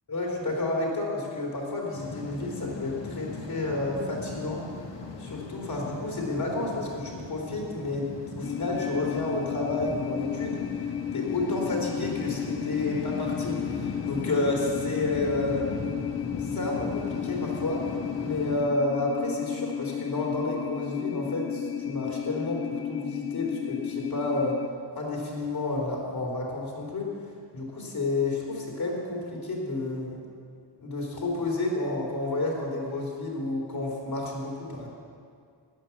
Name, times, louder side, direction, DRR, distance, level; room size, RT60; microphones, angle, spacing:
voice 1, 0.1-4.6 5.2-10.6 11.1-15.9 16.4-24.6 25.0-27.1 27.5-30.2 30.8-34.9, left 2 dB, 50° left, -2 dB, 3.7 m, -30 dB
sound 1, 1.9-18.6, left 3 dB, 70° left, 1.9 m, -39 dB
sound 2, 8.4-24.7, left 9 dB, 30° left, 0.6 m, -33 dB
13.5 x 9.6 x 7.3 m, 2.2 s
wide cardioid pair, 110°, 45 cm